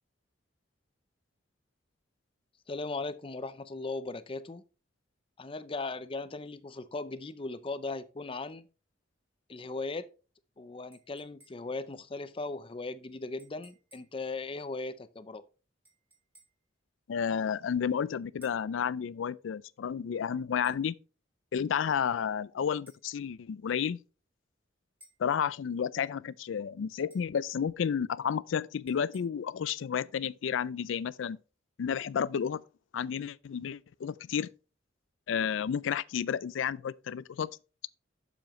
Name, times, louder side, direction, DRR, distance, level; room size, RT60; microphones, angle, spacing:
voice 1, 2.7-4.6 5.4-8.7 9.5-10.1 10.6-15.4, left 3 dB, 30° left, 0.5 m, -38 dB
sound 1, 10.9-11.8 13.4-14.2 15.9-16.7 18.4-18.7 20.6-20.9 22.9-23.1 25.0-25.3 27.1-27.4 28.9-29.2, equal, 10° right, 2.0 m, -61 dB
voice 2, 17.1-20.9 21.5-24.0 25.2-31.4 31.8-32.6 32.9-34.5 35.3-37.5, left 7 dB, 80° left, 0.4 m, -31 dB
7.5 x 6.9 x 3.1 m
head